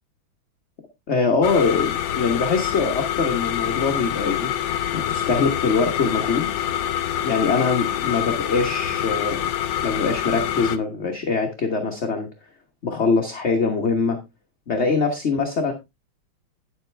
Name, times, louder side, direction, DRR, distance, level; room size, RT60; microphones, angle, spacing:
voice 1, 1.1-4.5 4.9-6.6 7.2-9.5 9.8-12.3 12.8-14.2 14.7-15.7, left 4 dB, 35° left, 3 dB, 1.4 m, -23 dB
sound 1, 1.4-10.8, left 10 dB, 70° left, 1.4 m, -26 dB
10.5 x 8.0 x 3.4 m, 0.23 s
omnidirectional pair, 2.3 m